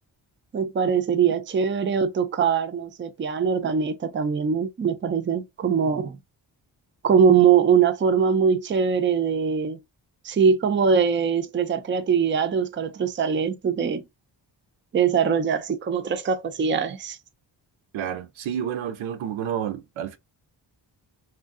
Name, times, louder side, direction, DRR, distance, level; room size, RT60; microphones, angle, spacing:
voice 1, 0.5-6.2 7.0-9.8 10.2-14.0 14.9-17.2, right 6 dB, 25° right, 0.4 m, -22 dB
voice 2, 17.9-20.2, right 9 dB, 85° right, 0.5 m, -30 dB
2.6 x 2.4 x 2.3 m
cardioid pair, 55°, 47 cm